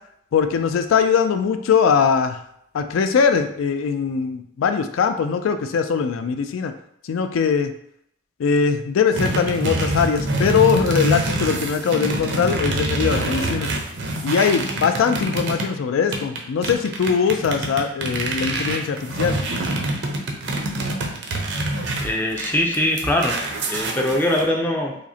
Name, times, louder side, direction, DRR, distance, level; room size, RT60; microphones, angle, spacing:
voice 1, 0.3-2.4 2.7-6.7 7.0-7.7 8.4-13.7 14.2-19.4, left 6 dB, 80° left, 8 dB, 0.3 m, -21 dB
sound 1, 9.1-15.7 16.1-24.4, right 1 dB, 60° right, 0.6 m, -25 dB
voice 2, 22.0-23.4 23.7-24.9, left 1 dB, 10° left, 1 dB, 0.4 m, -22 dB
4.8 x 2.1 x 2.7 m, 0.73 s
head